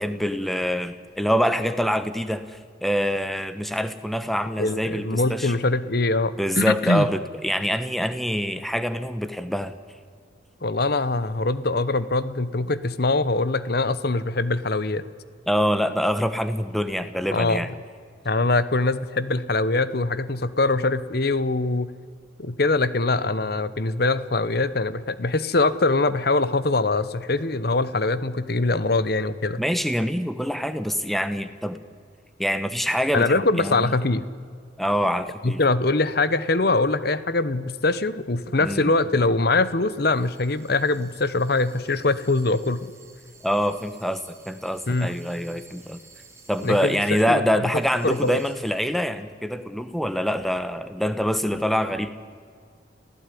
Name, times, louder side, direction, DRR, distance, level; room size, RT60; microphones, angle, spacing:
voice 1, 0.0-5.6 6.4-9.7 15.5-17.7 29.6-31.8 32.4-33.9 34.8-35.6 38.6-38.9 43.4-46.0 46.5-52.1, equal, ahead, 11 dB, 1.1 m, -25 dB
voice 2, 4.6-7.1 10.6-15.0 17.3-17.7 18.2-21.9 22.4-29.6 33.1-34.2 35.4-42.9 44.9-45.1 46.6-47.0 47.3-47.4 48.0-48.4, left 2 dB, 55° left, 15 dB, 1.0 m, -23 dB
sound 1, 40.0-47.3 47.7-48.9, right 5 dB, 15° right, 3.8 m, -53 dB
29.0 x 16.0 x 9.9 m, 2.2 s
head